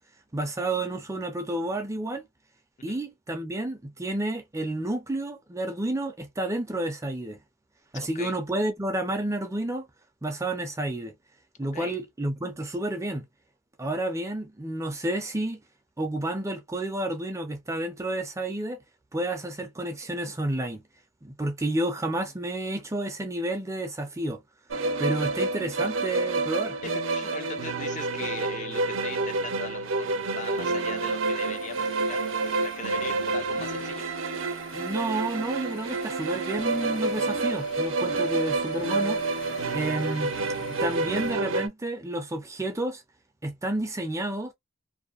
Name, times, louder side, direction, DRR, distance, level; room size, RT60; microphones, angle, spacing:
voice 1, 0.3-2.2 2.8-7.4 7.9-9.9 10.2-11.1 11.6-13.3 13.8-15.6 16.0-18.8 19.1-20.8 21.2-24.4 25.0-26.8 34.7-39.2 39.7-40.3 40.8-43.0 43.4-44.5, right 1 dB, 15° right, 0.5 m, -30 dB
voice 2, 7.9-8.3 11.7-11.9 26.8-34.1, left 4 dB, 40° left, 0.5 m, -40 dB
sound 1, 24.7-41.7, right 3 dB, 75° right, 0.6 m, -29 dB
sound 2, 30.1-41.3, left 6 dB, 85° left, 0.7 m, -48 dB
2.7 x 2.0 x 2.3 m
head